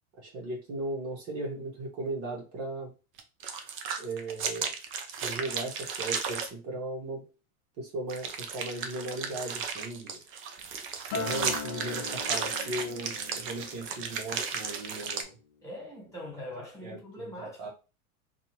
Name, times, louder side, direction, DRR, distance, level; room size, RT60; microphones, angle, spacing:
voice 1, 0.2-2.9 4.0-4.7 5.2-7.2 7.8-10.2 11.1-15.3 16.8-17.3 17.6-17.7, right 2 dB, 55° right, 1.5 m, -37 dB
sound 1, 3.2-6.5 8.1-15.2, right 6 dB, 30° right, 0.5 m, -34 dB
Acoustic guitar, 11.1-15.5 15.9-16.3, left 6 dB, 40° left, 0.5 m, -41 dB
voice 2, 15.6-17.7, left 1 dB, 5° left, 1.7 m, -42 dB
2.7 x 2.6 x 3.1 m
hypercardioid pair, 110°, 45 cm